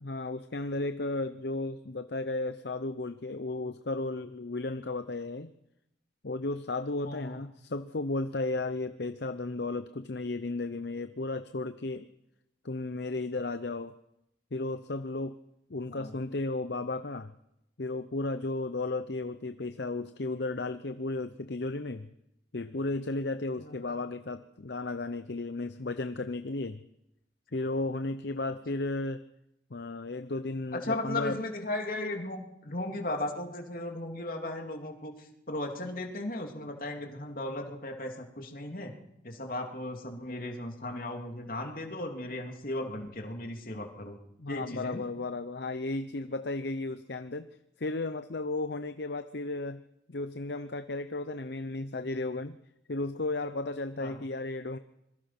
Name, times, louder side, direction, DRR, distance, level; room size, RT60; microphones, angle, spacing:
voice 1, 0.0-5.5 6.2-12.1 12.6-13.9 14.5-15.4 15.7-17.3 17.8-22.1 22.5-26.8 27.5-29.2 29.7-31.4 44.4-49.8 50.1-52.6 52.9-54.8, left 2 dB, 65° left, 10 dB, 0.8 m, -34 dB
voice 2, 7.0-7.4 15.9-16.1 23.6-24.0 30.7-38.9 39.2-44.2 44.5-45.0 54.0-54.2, left 1 dB, 50° left, 3 dB, 3.2 m, -36 dB
26.0 x 22.5 x 6.1 m, 0.84 s
head